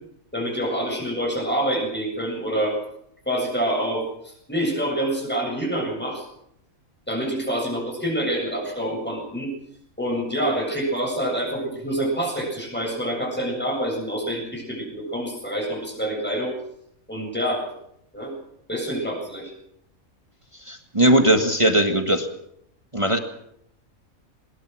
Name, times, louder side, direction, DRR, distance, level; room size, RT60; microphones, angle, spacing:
voice 1, 0.3-2.8 3.3-6.2 7.1-9.5 10.0-16.5 17.1-17.6 18.1-18.3 18.7-19.5, right 1 dB, 5° left, 0 dB, 7.8 m, -26 dB
voice 2, 20.7-22.3 22.9-23.2, right 1 dB, 20° right, 6 dB, 1.7 m, -19 dB
21.0 x 20.5 x 6.3 m, 0.74 s
omnidirectional pair, 1.5 m